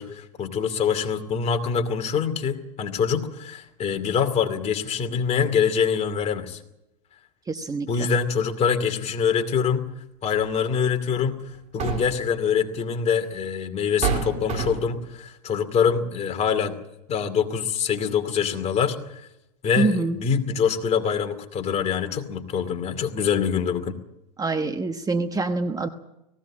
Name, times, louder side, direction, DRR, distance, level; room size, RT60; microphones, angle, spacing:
voice 1, 0.0-6.6 7.9-9.8 10.2-11.4 11.7-16.8 17.1-19.2 19.6-24.0, left 6 dB, 30° left, 6 dB, 2.6 m, -24 dB
voice 2, 7.5-8.1 19.8-20.2 24.4-25.9, right 3 dB, 15° right, 7 dB, 1.1 m, -25 dB
sound 1, 10.4-10.5 11.5-12.3 13.3-13.4 14.0-15.0, right 6 dB, 35° right, 3.8 m, -28 dB
19.0 x 16.5 x 8.6 m, 0.89 s
hypercardioid pair, 110°, 21 cm